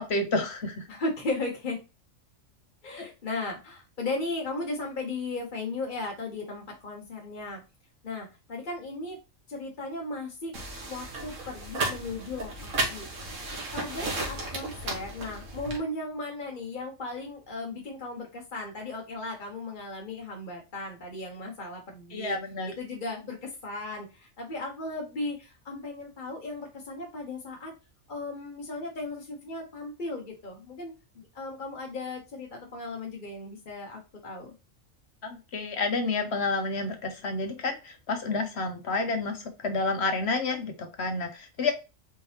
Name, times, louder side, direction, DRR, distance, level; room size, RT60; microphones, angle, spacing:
voice 1, 0.0-0.9 2.9-3.1 22.1-22.7 35.2-41.7, left 3 dB, 60° left, 5 dB, 1.0 m, -30 dB
voice 2, 0.9-1.8 2.8-7.6 8.0-9.2 9.5-10.5 10.9-13.1 13.7-22.4 22.6-27.7 28.1-30.9 31.3-34.5, left 2 dB, 40° left, -1 dB, 1.1 m, -36 dB
sound 1, 10.5-15.8, right 2 dB, 75° right, 1.7 m, -34 dB
4.6 x 3.7 x 2.8 m, 0.29 s
omnidirectional pair, 1.3 m